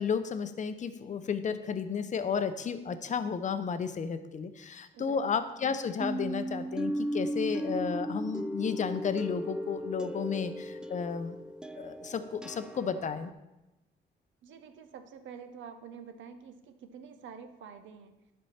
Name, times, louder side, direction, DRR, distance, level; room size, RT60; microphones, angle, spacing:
voice 1, 0.0-11.3 11.7-13.3, left 6 dB, 40° left, 11 dB, 0.6 m, -33 dB
voice 2, 4.9-5.3 14.4-18.2, right 6 dB, 75° right, 8 dB, 0.8 m, -47 dB
sound 1, 6.0-13.3, equal, 5° right, 0.3 m, -36 dB
11.0 x 4.4 x 4.3 m, 1.0 s
cardioid pair, 90°, 20 cm